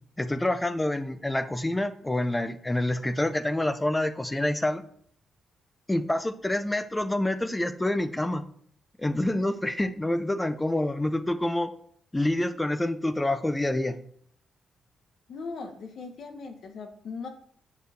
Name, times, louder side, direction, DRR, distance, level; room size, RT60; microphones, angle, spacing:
voice 1, 0.2-4.8 5.9-8.4 9.0-11.7 12.1-14.0, left 1 dB, 10° left, 11 dB, 0.5 m, -27 dB
voice 2, 15.3-17.3, left 4 dB, 55° left, 5 dB, 1.3 m, -39 dB
9.2 x 4.8 x 5.1 m, 0.63 s
wide cardioid pair, 165°, 0 cm